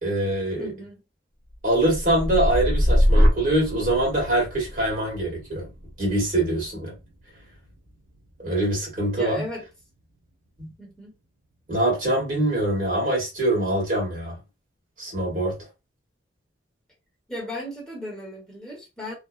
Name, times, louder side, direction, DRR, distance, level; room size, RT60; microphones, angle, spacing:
voice 1, 0.0-0.7 1.6-5.7 6.0-6.9 8.4-9.5 10.6-10.7 11.7-14.4 15.0-15.5, right 1 dB, 45° right, 1.7 m, -24 dB
voice 2, 0.6-1.0 9.2-9.6 10.8-11.1 17.3-19.1, equal, 5° left, 1.1 m, -35 dB
sound 1, 1.5-9.6 10.0-10.5, equal, 90° right, 0.9 m, -25 dB
2.9 x 2.1 x 2.4 m
head